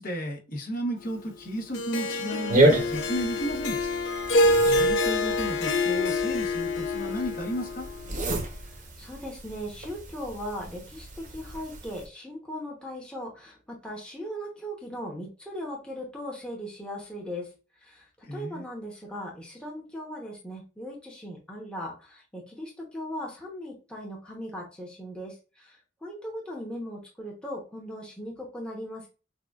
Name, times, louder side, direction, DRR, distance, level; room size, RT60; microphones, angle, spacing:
voice 1, 0.0-4.0 4.6-7.9 18.2-18.6, equal, 50° left, 1.1 m, -33 dB
Harp, 1.7-8.1, left 2 dB, 80° left, 0.8 m, -26 dB
sound 1, 2.5-12.0, right 2 dB, 45° right, 0.9 m, -30 dB
voice 2, 8.6-17.5 17.8-18.1 18.3-29.1, equal, 5° left, 1.0 m, -38 dB
6.5 x 2.4 x 2.4 m
head